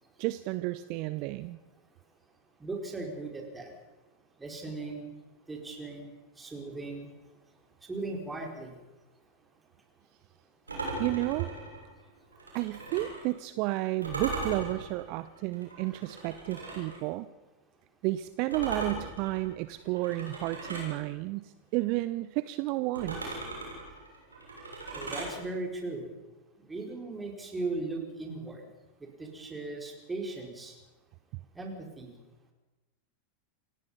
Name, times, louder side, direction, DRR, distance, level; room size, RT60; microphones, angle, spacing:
voice 1, 0.2-1.6 10.7-11.5 12.5-17.3 18.0-23.4, right 18 dB, 45° right, 15 dB, 0.7 m, -32 dB
voice 2, 2.6-3.7 4.4-5.1 5.5-7.3 7.8-8.9 12.5-12.6 24.9-26.1 26.6-28.7 29.0-30.8 31.5-32.1, right 3 dB, 10° right, 2 dB, 4.5 m, -38 dB
sound 1, 10.7-13.3 14.0-17.0 18.5-21.0 22.9-25.4, right 2 dB, 75° right, 7.2 m, -38 dB
28.0 x 16.5 x 5.6 m, 1.1 s
figure-of-eight pair, 90°, 0 cm